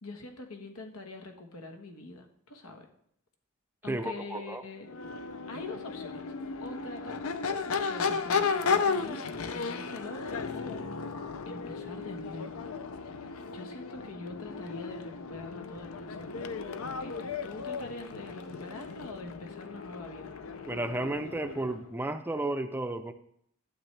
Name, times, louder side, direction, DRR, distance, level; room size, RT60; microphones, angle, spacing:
voice 1, 0.0-2.9 3.8-4.9 5.5-6.3 6.6-10.9 11.5-12.6 13.5-16.6 17.0-20.3, left 2 dB, 90° left, 4 dB, 1.4 m, -44 dB
voice 2, 3.9-4.6 20.7-23.1, right 1 dB, 10° right, 8 dB, 0.4 m, -33 dB
Crowd / Race car auto racing / Accelerating revving vroom, 4.8-21.9, left 5 dB, 70° left, 0.6 m, -35 dB
12.0 x 8.0 x 3.3 m, 0.68 s
head